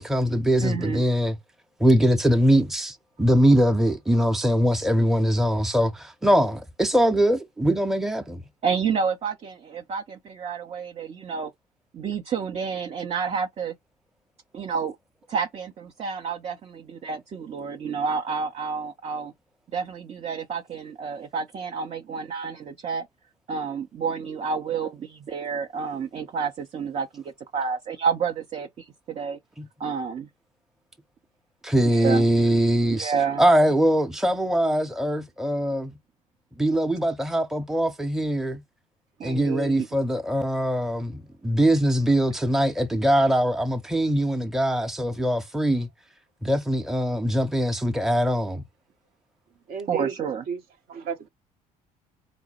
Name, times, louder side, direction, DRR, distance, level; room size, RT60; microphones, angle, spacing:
voice 1, 0.0-1.4 1.8-8.4 31.6-33.1 33.4-35.9 36.6-38.6 39.2-45.9 46.4-48.6, equal, ahead, 0.8 m, -22 dB
voice 2, 0.6-1.0 8.6-11.5 11.9-13.7 14.5-15.0 15.3-19.3 19.7-23.1 23.5-29.4 29.8-30.3 31.8-32.3 32.8-33.4 39.2-39.9 49.9-50.4, right 6 dB, 35° right, 0.6 m, -29 dB
voice 3, 49.7-50.6 50.9-51.3, right 6 dB, 55° right, 0.9 m, -33 dB
4.1 x 2.1 x 4.2 m
figure-of-eight pair, 55°, 19 cm